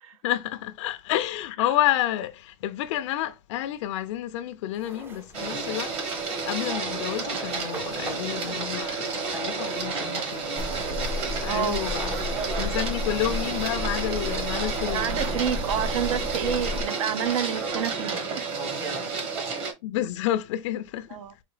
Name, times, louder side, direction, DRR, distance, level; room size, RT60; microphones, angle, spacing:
voice 1, 0.2-6.0 6.4-10.5 11.4-12.3 12.6-15.1 19.8-21.1, left 13 dB, 60° left, 0.5 m, -29 dB
sound 1, 4.7-17.9, right 3 dB, 15° right, 0.5 m, -44 dB
Printer, 5.3-19.7, right 4 dB, 35° right, 1.1 m, -31 dB
sound 2, 10.6-16.8, left 2 dB, 50° right, 1.2 m, -33 dB
voice 2, 11.4-11.8 14.9-18.5 21.1-21.3, right 9 dB, 75° right, 0.7 m, -29 dB
4.8 x 2.6 x 3.2 m
supercardioid pair, 155°, 17 cm